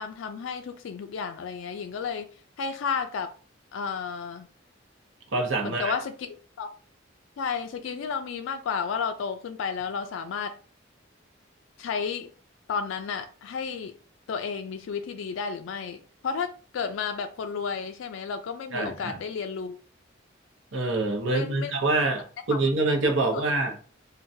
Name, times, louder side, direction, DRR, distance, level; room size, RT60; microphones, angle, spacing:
voice 1, 0.0-2.3 2.6-3.3 3.7-4.5 5.6-6.7 7.4-10.6 11.8-12.3 12.7-13.9 14.3-19.8 21.2-21.7 22.5-22.8 23.3-23.6, left 6 dB, 85° left, 0.3 m, -32 dB
voice 2, 5.3-5.9 18.7-19.2 20.7-23.7, right 2 dB, 80° right, 0.8 m, -26 dB
3.8 x 2.2 x 2.6 m
head